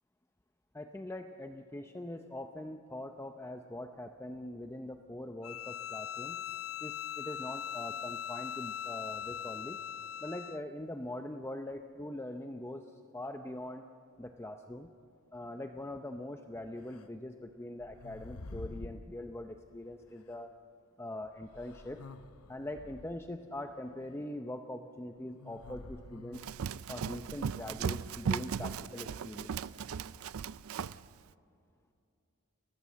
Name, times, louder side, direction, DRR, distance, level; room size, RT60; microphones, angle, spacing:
voice 1, 0.7-6.4 6.8-9.8 10.2-12.8 13.1-13.8 14.2-14.9 15.3-20.5 21.0-22.0 22.5-26.5 26.9-29.7, left 1 dB, 10° left, 6 dB, 0.6 m, -42 dB
Bowed string instrument, 5.4-10.7, left 9 dB, 65° left, 0.6 m, -40 dB
sound 1, 16.9-17.1 17.8-19.1 20.3-20.4 21.5-23.3 25.4-26.8, left 2 dB, 90° left, 0.9 m, -48 dB
Run, 26.3-31.0, right 6 dB, 75° right, 0.4 m, -37 dB
30.0 x 14.0 x 7.5 m, 2.7 s
head